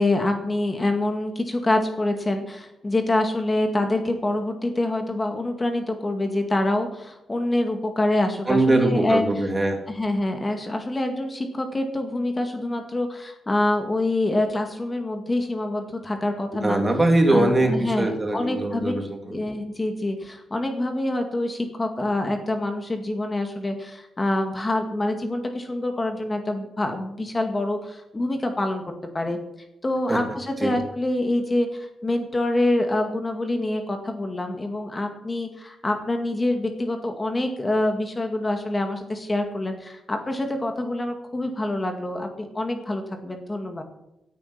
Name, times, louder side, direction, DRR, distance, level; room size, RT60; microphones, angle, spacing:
voice 1, 0.0-9.5 9.9-16.8 17.3-18.9 19.3-29.4 29.8-43.8, left 1 dB, 25° left, 5 dB, 2.1 m, -26 dB
voice 2, 8.5-9.8 16.6-19.4 30.1-30.2 30.6-30.7, right 2 dB, 20° right, 3 dB, 3.2 m, -21 dB
17.0 x 9.5 x 5.9 m, 0.87 s
cardioid pair, 105°, 0 cm